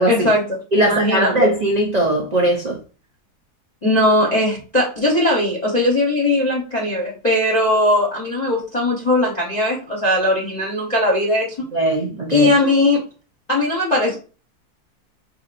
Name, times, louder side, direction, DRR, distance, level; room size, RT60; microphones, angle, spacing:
voice 1, 0.1-1.5 3.8-11.6 12.3-13.0 13.5-14.2, left 1 dB, 30° left, 0.9 m, -19 dB
voice 2, 0.7-2.8 11.7-12.5, right 1 dB, 70° right, 0.4 m, -19 dB
4.9 x 2.8 x 2.5 m
omnidirectional pair, 1.7 m